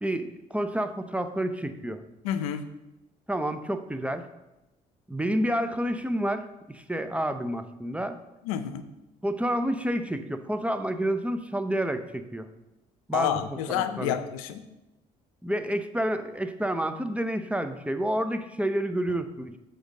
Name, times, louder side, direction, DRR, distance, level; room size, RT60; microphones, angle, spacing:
voice 1, 0.0-2.0 3.3-4.3 5.1-8.2 9.2-12.5 13.1-14.2 15.4-19.6, right 1 dB, 5° right, 9 dB, 0.8 m, -29 dB
voice 2, 2.2-2.6 8.4-8.8 13.1-14.6, left 10 dB, 90° left, 10 dB, 0.6 m, -29 dB
7.9 x 3.9 x 6.4 m, 0.98 s
hypercardioid pair, 60°, 17 cm